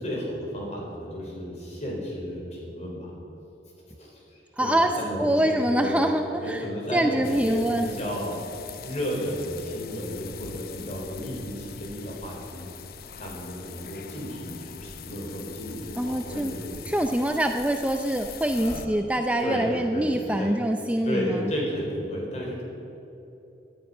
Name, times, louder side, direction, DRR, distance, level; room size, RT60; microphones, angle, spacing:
voice 1, 0.0-3.1 4.0-12.7 13.2-16.8 18.4-18.9 19.4-20.5 21.0-22.6, equal, 40° left, -2 dB, 4.2 m, -33 dB
voice 2, 4.6-4.9 5.2-6.7 6.9-7.9 16.0-16.5 16.9-21.5, right 1 dB, 10° right, 4 dB, 0.5 m, -25 dB
sound 1, 7.2-18.9, left 6 dB, 55° left, 0.7 m, -42 dB
17.5 x 12.0 x 5.5 m, 3.0 s
head